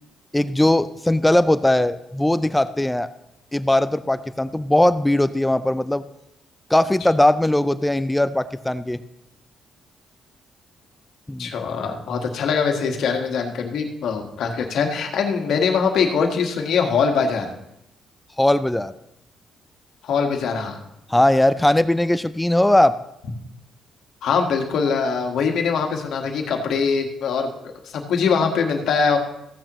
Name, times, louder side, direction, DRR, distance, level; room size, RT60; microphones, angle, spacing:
voice 1, 0.3-3.1 3.5-6.0 6.7-9.0 11.3-11.5 18.4-18.9 21.1-23.0, left 1 dB, 10° left, 14 dB, 0.4 m, -19 dB
voice 2, 11.4-17.5 20.0-20.8 24.2-27.5 27.8-29.2, left 5 dB, 70° left, 3 dB, 1.5 m, -22 dB
15.0 x 8.7 x 3.0 m, 0.83 s
cardioid pair, 90°, 0 cm